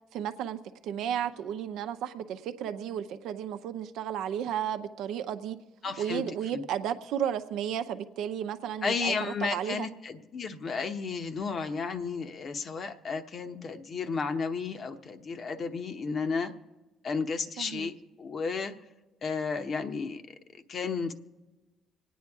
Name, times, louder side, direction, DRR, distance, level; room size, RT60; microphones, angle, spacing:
voice 1, 0.1-5.6 6.0-9.9 17.6-17.9, right 9 dB, 80° right, 9 dB, 0.6 m, -33 dB
voice 2, 5.8-6.2 6.5-6.6 8.8-16.5 17.0-18.7 19.2-20.4 20.7-21.1, left 5 dB, 55° left, 8 dB, 1.0 m, -33 dB
25.5 x 9.4 x 3.6 m, 1.2 s
supercardioid pair, 60°, 0 cm